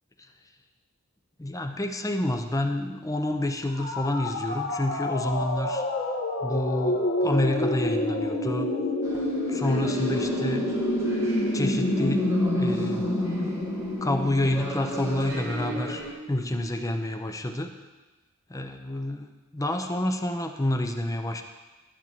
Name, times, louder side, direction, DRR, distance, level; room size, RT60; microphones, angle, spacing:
voice 1, 1.4-5.8 6.4-8.7 9.5-10.7 11.5-13.0 14.0-17.7 18.5-21.4, left 1 dB, 15° left, 5 dB, 0.6 m, -28 dB
sound 1, 3.7-15.5, left 1 dB, 50° left, 1.3 m, -28 dB
sound 2, 9.0-16.1, equal, 15° right, 1.8 m, -35 dB
12.5 x 4.5 x 7.4 m, 1.2 s
head